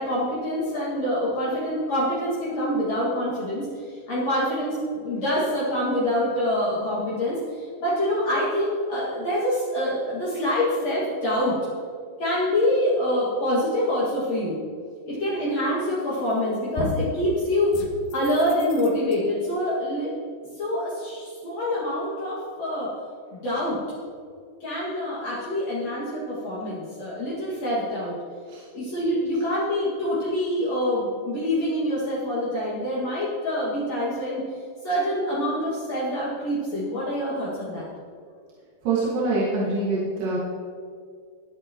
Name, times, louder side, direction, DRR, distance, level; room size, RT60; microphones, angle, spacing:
voice 1, 0.0-11.5 12.2-14.6 15.1-17.8 18.1-20.1 20.6-22.9 23.3-23.8 24.6-28.1 28.7-34.4 34.8-37.9, left 1 dB, 55° left, -8 dB, 3.1 m, -26 dB
sound 1, 16.0-16.4 16.8-17.2 17.7-19.2, left 4 dB, 70° left, 2.3 m, -33 dB
voice 2, 38.8-40.4, right 3 dB, 85° right, -7 dB, 3.6 m, -24 dB
20.5 x 7.9 x 3.0 m, 2.2 s
omnidirectional pair, 3.8 m